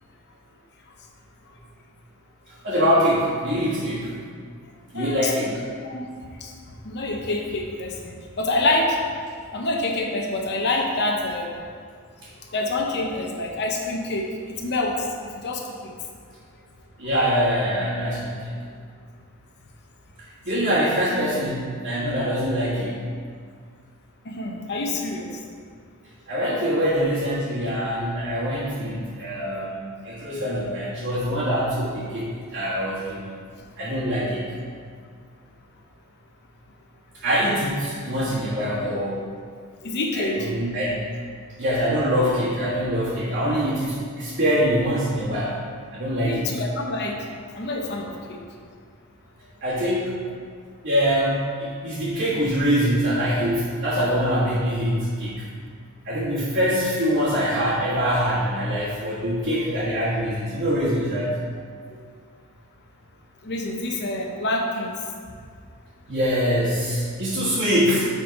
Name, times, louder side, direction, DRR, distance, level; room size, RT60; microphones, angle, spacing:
voice 1, 2.6-4.1 4.9-5.5 17.0-18.5 20.4-22.9 26.3-33.3 33.8-34.4 37.2-39.2 40.1-41.0 41.6-45.6 45.9-46.5 49.6-50.1 50.8-55.3 56.0-61.3 66.1-68.1, equal, 50° right, -10 dB, 1.5 m, -24 dB
voice 2, 4.9-5.3 5.8-6.0 6.4-6.5 6.8-9.0 9.5-11.6 12.5-14.3 14.6-15.6 24.3-25.3 39.8-40.5 46.2-47.2 47.5-48.4 61.9-62.0 63.4-64.9, left 2 dB, 50° left, 0 dB, 0.7 m, -26 dB
7.3 x 3.8 x 5.1 m, 2.1 s
head